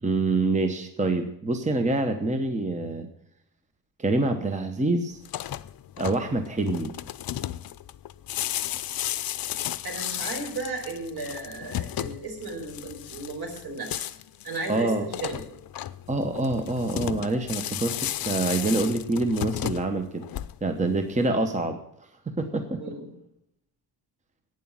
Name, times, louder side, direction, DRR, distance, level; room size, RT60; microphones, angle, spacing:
voice 1, 0.0-3.1 4.0-5.2 6.0-6.9 14.7-15.1 16.1-20.3 20.6-21.8 22.4-22.8, right 2 dB, 15° right, 7 dB, 1.0 m, -26 dB
sound 1, 5.2-20.8, left 12 dB, 60° left, 0.6 m, -34 dB
voice 2, 9.8-14.0 14.4-15.4 21.2-21.4 22.8-23.1, right 3 dB, 65° right, 2 dB, 5.0 m, -35 dB
11.5 x 9.3 x 7.3 m, 0.77 s
wide cardioid pair, 145°, 41 cm